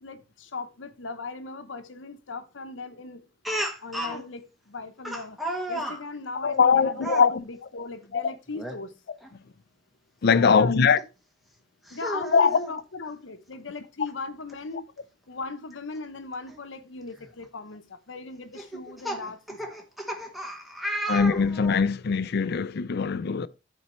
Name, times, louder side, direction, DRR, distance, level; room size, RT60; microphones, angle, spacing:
voice 1, 0.0-3.2 3.8-5.4 5.7-8.9 10.3-10.9 11.9-14.9 15.3-19.8, left 3 dB, 75° left, 0.9 m, -38 dB
Speech, 3.4-4.2 5.0-6.0 6.9-7.3 8.5-8.8 9.2-9.3 11.0-11.1 11.9-12.7 14.1-14.2 14.5-14.6 16.5-16.6 17.2-17.4 18.5-21.9, right 1 dB, ahead, 1.0 m, -33 dB
voice 2, 6.4-7.3 8.1-8.2 10.2-11.0 12.3-12.6 21.1-23.5, left 5 dB, 55° left, 0.4 m, -21 dB
12.5 x 4.3 x 3.0 m
head